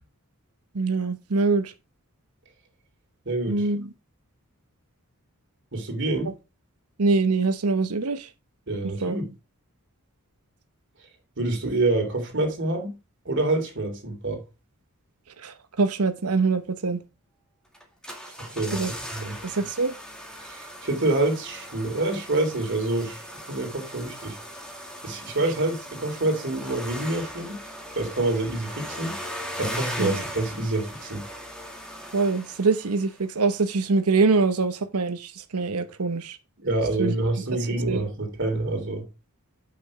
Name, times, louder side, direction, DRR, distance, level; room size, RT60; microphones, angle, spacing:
voice 1, 0.7-1.7 3.5-3.9 7.0-8.3 9.0-9.2 15.4-17.0 18.7-18.9 19.4-19.9 30.0-30.1 32.1-36.4 37.0-37.2 37.9-38.0, right 4 dB, 85° right, 1.0 m, -24 dB
voice 2, 3.2-3.7 5.7-6.3 8.7-9.2 11.4-12.9 13.2-14.4 18.4-19.4 20.4-24.4 25.0-27.6 27.9-29.1 29.6-31.2 36.6-39.0, right 2 dB, 55° right, 3.1 m, -27 dB
sound 1, 17.7-33.2 33.5-33.6, equal, 5° left, 1.9 m, -38 dB
8.6 x 6.1 x 4.9 m
head